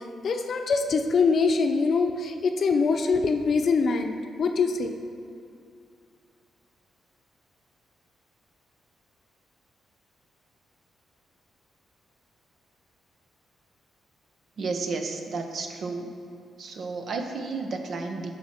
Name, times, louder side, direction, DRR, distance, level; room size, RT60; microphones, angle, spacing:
voice 1, 0.2-4.9, left 4 dB, 55° left, 5 dB, 0.7 m, -24 dB
voice 2, 14.6-16.1 16.6-18.3, right 4 dB, 60° right, 4 dB, 0.9 m, -32 dB
10.5 x 4.6 x 5.9 m, 2.5 s
cardioid pair, 100°, 0 cm